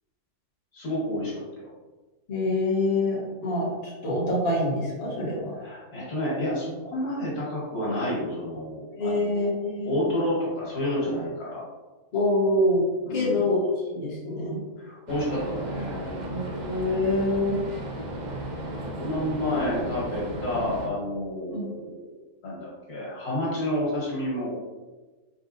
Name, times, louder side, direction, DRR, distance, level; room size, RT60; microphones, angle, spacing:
voice 1, 0.7-1.4 5.6-9.5 9.9-11.6 13.0-13.5 14.8-16.2 18.7-22.2 22.4-24.5, left 1 dB, 85° left, -5 dB, 1.9 m, -30 dB
voice 2, 2.3-5.5 9.0-9.9 12.1-12.8 13.1-13.6 13.9-14.6 16.3-17.6 21.5-21.7, left 1 dB, 45° left, -5 dB, 1.3 m, -25 dB
sound 1, 15.1-20.9, right 1 dB, 90° right, 0.4 m, -35 dB
4.1 x 3.9 x 2.5 m, 1.2 s
omnidirectional pair, 1.5 m